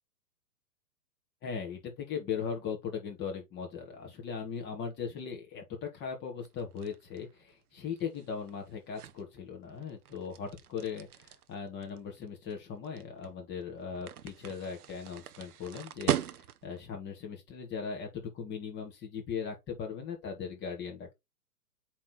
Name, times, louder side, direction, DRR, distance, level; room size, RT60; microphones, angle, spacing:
voice 1, 1.4-21.1, left 6 dB, 20° left, 3.5 m, -39 dB
sound 1, 6.4-16.8, right 10 dB, 65° right, 1.1 m, -40 dB
8.3 x 4.4 x 3.4 m
hypercardioid pair, 140°, 48 cm